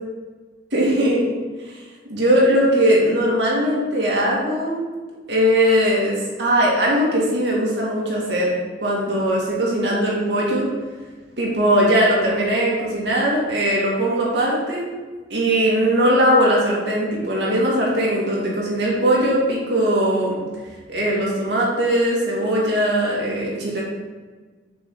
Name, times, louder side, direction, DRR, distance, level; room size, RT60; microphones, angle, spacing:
voice 1, 0.7-1.3 1.6-1.8 2.0-4.8 5.3-10.7 11.4-14.9 15.3-20.4 20.9-23.8, equal, 65° right, -4 dB, 2.4 m, -20 dB
7.6 x 6.0 x 3.9 m, 1.4 s
head